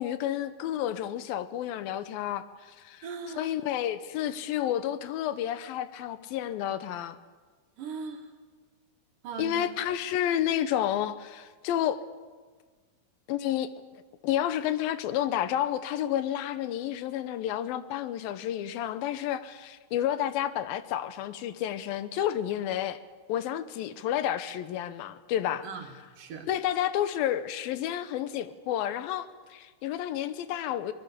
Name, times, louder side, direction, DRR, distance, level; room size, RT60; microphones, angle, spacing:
voice 1, 0.0-2.4 2.8-3.0 3.4-7.2 9.4-12.0 13.3-13.7 14.2-23.0 23.3-25.6 26.5-30.9, left 11 dB, 80° left, 2.6 m, -30 dB
voice 2, 3.0-3.6 7.8-8.3 9.2-9.7 25.6-26.5, right 5 dB, 65° right, 3.4 m, -39 dB
24.5 x 20.0 x 6.8 m
omnidirectional pair, 4.2 m